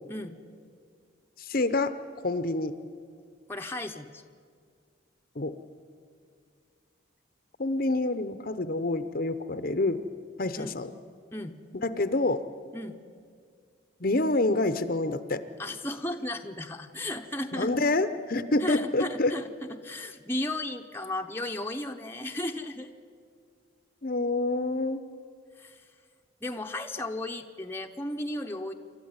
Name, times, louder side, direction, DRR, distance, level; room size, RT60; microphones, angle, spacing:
voice 1, 1.5-1.9 2.2-2.7 5.4-5.5 7.6-10.0 10.4-10.9 11.8-12.4 14.0-15.4 17.5-19.3 24.0-25.0, left 2 dB, 45° left, 11 dB, 0.8 m, -27 dB
voice 2, 3.5-4.2 10.6-10.8 11.3-11.6 12.7-13.0 15.6-17.9 18.6-22.9 25.6-25.8 26.4-28.7, left 1 dB, 10° left, 3 dB, 0.8 m, -35 dB
27.5 x 13.0 x 9.6 m, 2.1 s
head